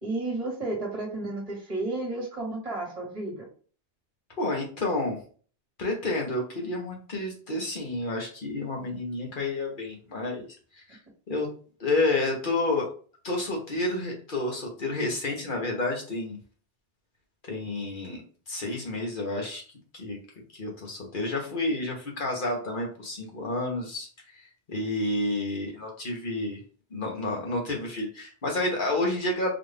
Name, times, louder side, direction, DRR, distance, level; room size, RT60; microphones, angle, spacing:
voice 1, 0.0-3.5, right 2 dB, 35° right, -1 dB, 1.4 m, -32 dB
voice 2, 4.4-5.2 5.8-10.5 10.9-11.0 11.3-11.5 11.8-12.9 13.2-16.4 17.5-18.2 18.5-19.6 19.9-20.2 20.5-24.1 24.7-26.6 26.9-29.6, left 2 dB, 50° left, 0 dB, 1.3 m, -30 dB
4.0 x 2.6 x 3.3 m, 0.41 s
omnidirectional pair, 1.1 m